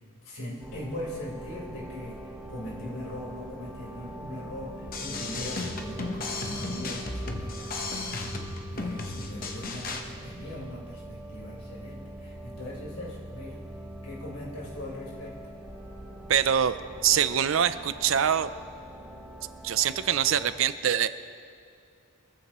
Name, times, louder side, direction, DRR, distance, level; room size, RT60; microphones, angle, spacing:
voice 1, 0.2-13.6 14.0-15.3, left 1 dB, 85° left, -5 dB, 4.5 m, -40 dB
sound 1, 0.6-20.5, right 1 dB, ahead, 2.4 m, -43 dB
sound 2, 4.9-10.0, left 3 dB, 45° left, 1.0 m, -35 dB
voice 2, 16.3-16.8 17.0-18.5 19.6-21.1, right 9 dB, 70° right, 13 dB, 0.5 m, -24 dB
23.0 x 14.5 x 3.1 m, 2.3 s
head